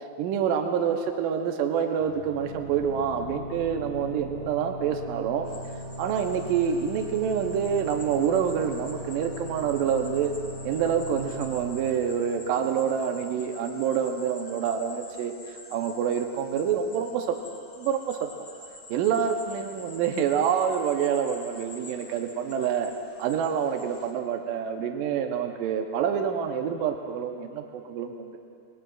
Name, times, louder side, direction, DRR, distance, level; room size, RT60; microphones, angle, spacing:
voice 1, 0.2-5.5 6.0-10.3 10.6-17.4 17.8-18.3 18.9-22.9 23.2-28.4, right 8 dB, 75° right, 4 dB, 2.4 m, -27 dB
sound 1, 2.0-13.4, equal, 40° right, 3.7 m, -40 dB
sound 2, 5.4-24.1, left 2 dB, 45° left, 0.6 m, -48 dB
24.5 x 20.5 x 2.4 m, 2.4 s
omnidirectional pair, 4.1 m